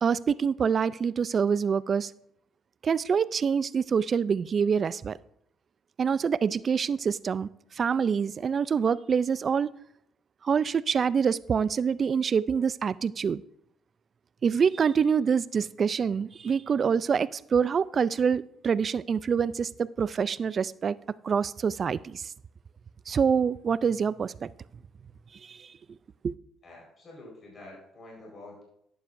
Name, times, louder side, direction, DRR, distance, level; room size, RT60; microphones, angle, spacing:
voice 1, 0.0-2.1 2.8-5.2 6.0-9.7 10.4-13.4 14.4-21.0 21.2-22.3 23.1-24.5 25.4-25.7 26.2-26.3, right 6 dB, 45° right, 19 dB, 0.4 m, -26 dB
voice 2, 26.6-28.6, left 2 dB, 45° left, -2 dB, 4.4 m, -47 dB
11.5 x 10.0 x 2.6 m, 0.74 s
supercardioid pair, 65°, 0 cm